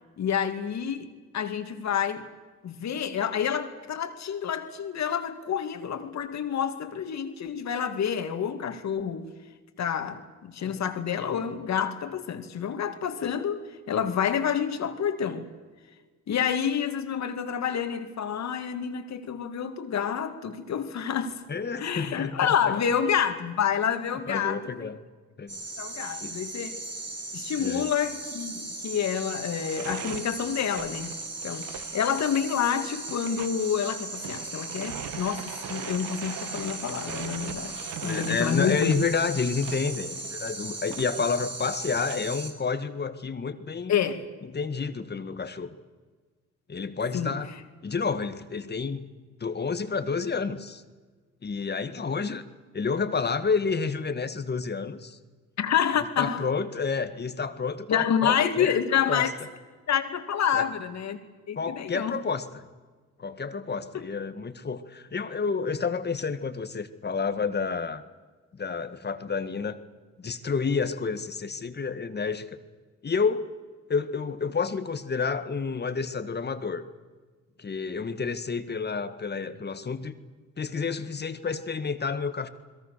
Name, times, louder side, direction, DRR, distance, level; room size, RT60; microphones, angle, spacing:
voice 1, 0.2-2.3 2.6-9.3 9.8-15.5 16.3-21.4 21.8-24.9 25.8-26.8 27.3-31.2 31.4-38.9 43.9-44.2 47.1-47.4 55.6-56.5 57.9-59.3 59.9-61.2 61.5-62.2 63.9-64.1, left 8 dB, 65° left, 2.5 m, -28 dB
voice 2, 21.5-22.5 24.3-25.0 25.4-25.6 26.2-26.4 27.6-27.9 38.0-44.0 44.4-45.7 46.7-47.5 47.8-49.1 49.4-50.8 51.4-52.4 52.7-55.2 56.2-59.3 60.5-60.6 61.6-62.6 63.2-68.0 68.5-69.8 70.2-72.5 73.0-73.5 73.9-76.8 77.6-80.2 80.6-82.5, left 5 dB, 35° left, 1.8 m, -30 dB
sound 1, 25.5-42.5, right 2 dB, 40° right, 6.0 m, -38 dB
sound 2, 29.5-42.2, right 10 dB, 80° right, 1.3 m, -42 dB
30.0 x 21.5 x 6.8 m
cardioid pair, 90°, 30 cm